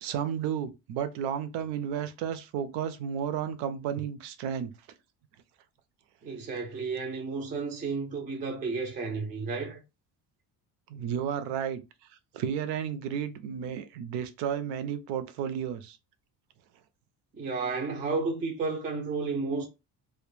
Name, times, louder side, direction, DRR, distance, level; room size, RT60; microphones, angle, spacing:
voice 1, 0.0-4.7 10.9-11.8 12.3-16.0, right 8 dB, 75° right, 0.5 m, -32 dB
voice 2, 6.2-9.8 17.3-19.7, right 4 dB, 20° right, 0.3 m, -32 dB
2.1 x 2.1 x 3.0 m
cardioid pair, 150°, 42 cm